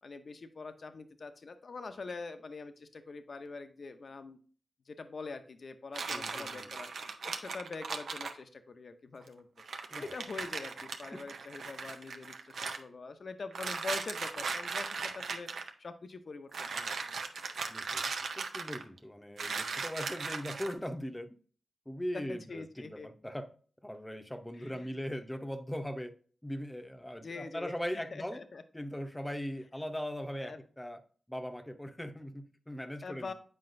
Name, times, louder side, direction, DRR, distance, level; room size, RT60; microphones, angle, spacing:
voice 1, 0.0-4.4 4.9-9.5 9.8-15.5 15.8-16.9 22.1-23.1 24.6-24.9 27.2-27.7 28.1-28.6 30.4-30.6 33.0-33.3, left 4 dB, 60° left, 0.7 m, -44 dB
sound 1, 5.9-8.4 9.3-9.4 9.6-12.8 13.5-15.7 16.5-19.0 19.4-20.7, right 4 dB, 80° right, 0.5 m, -38 dB
voice 2, 6.1-6.7 9.9-10.1 11.1-11.3 17.7-21.4 21.9-23.5 23.8-26.1 26.4-28.4 28.7-31.0 31.3-33.3, equal, 10° left, 0.8 m, -40 dB
7.7 x 4.9 x 2.6 m
cardioid pair, 40°, 0 cm